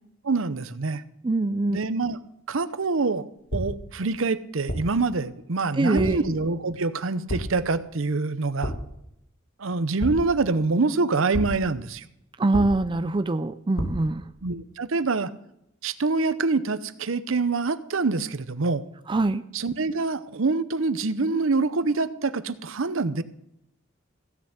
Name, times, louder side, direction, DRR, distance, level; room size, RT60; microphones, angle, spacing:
voice 1, 0.2-1.0 1.7-2.2 2.5-3.2 3.5-8.7 9.6-12.0 14.4-15.3 15.8-18.8 19.5-23.2, right 3 dB, 65° right, 14 dB, 0.8 m, -25 dB
voice 2, 1.2-1.8 5.7-6.2 12.4-14.2 19.1-19.4, right 2 dB, 25° right, 11 dB, 0.4 m, -23 dB
sound 1, 3.5-4.0 4.7-5.1 5.9-6.3 7.3-7.7 8.6-9.0 10.0-10.6 11.3-11.8 12.5-13.1 13.8-14.2, equal, 85° left, 2.0 m, -31 dB
15.5 x 7.0 x 8.0 m, 0.80 s
head